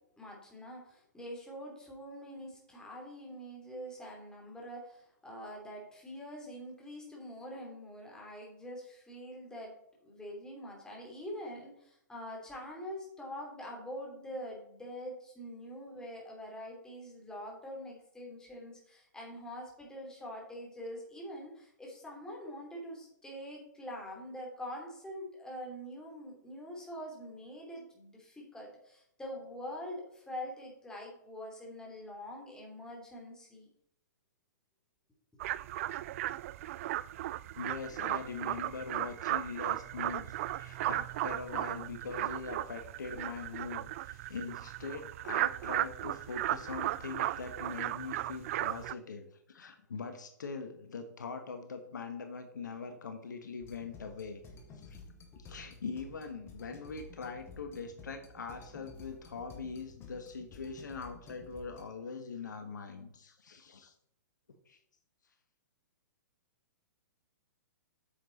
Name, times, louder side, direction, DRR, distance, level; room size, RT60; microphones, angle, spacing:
voice 1, 0.2-9.7 10.0-33.7, equal, 5° left, -2 dB, 3.3 m, -44 dB
sound 1, 35.4-48.9, right 14 dB, 45° right, 0.3 m, -36 dB
voice 2, 37.5-54.4 54.7-55.0 55.4-63.9 64.7-64.8, left 5 dB, 75° left, 7 dB, 1.3 m, -42 dB
sound 2, 53.6-61.8, left 3 dB, 25° left, 1.9 m, -52 dB
8.9 x 7.0 x 4.2 m, 0.74 s
hypercardioid pair, 120°, 10 cm